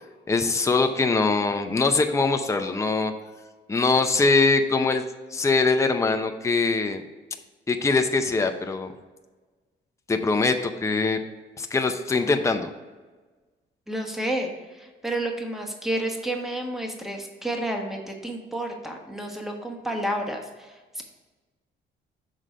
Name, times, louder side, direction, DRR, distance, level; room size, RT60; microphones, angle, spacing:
voice 1, 0.3-3.1 3.7-5.0 5.3-7.0 7.7-8.9 10.1-11.2 11.6-12.7, left 3 dB, 15° left, 6 dB, 0.6 m, -22 dB
voice 2, 13.9-14.5 14.8-21.0, right 1 dB, ahead, 2 dB, 1.2 m, -30 dB
6.2 x 3.8 x 5.5 m, 1.3 s
cardioid pair, 90°, 20 cm